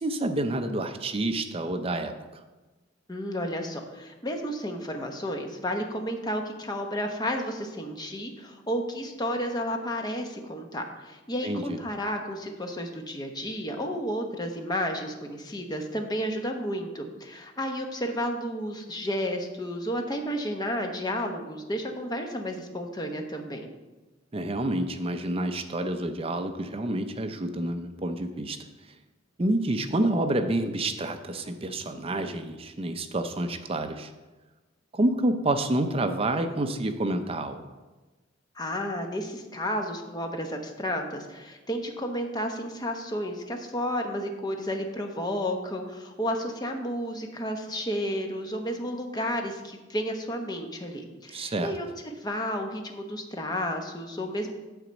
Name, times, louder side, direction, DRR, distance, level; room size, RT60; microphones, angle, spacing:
voice 1, 0.0-2.1 11.4-11.8 24.3-28.6 29.4-34.1 34.9-37.6 51.3-51.7, right 1 dB, 30° right, 7 dB, 0.6 m, -28 dB
voice 2, 3.1-23.6 38.6-54.5, equal, 20° left, 3 dB, 0.9 m, -32 dB
9.3 x 4.0 x 7.0 m, 1.2 s
head